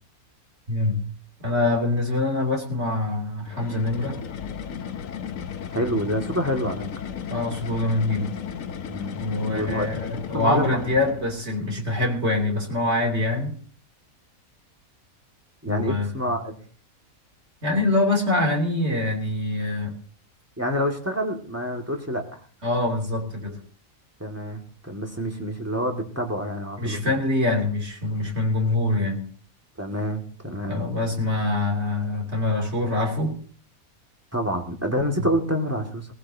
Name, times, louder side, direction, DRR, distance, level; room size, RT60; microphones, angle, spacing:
voice 1, 0.7-1.1 1.4-4.2 7.3-8.3 9.2-13.5 15.6-16.1 17.6-20.0 22.6-23.6 26.8-29.2 30.7-33.4 35.2-35.3, left 2 dB, 50° right, 2 dB, 3.3 m, -24 dB
sound 1, 3.5-11.5, left 7 dB, 65° left, 1.2 m, -35 dB
voice 2, 5.7-6.9 8.9-9.9 10.3-10.8 15.6-16.6 20.6-22.4 24.2-27.0 29.8-30.9 34.3-36.1, equal, 10° right, 2 dB, 2.0 m, -27 dB
20.5 x 15.0 x 2.8 m, 0.43 s
omnidirectional pair, 1.5 m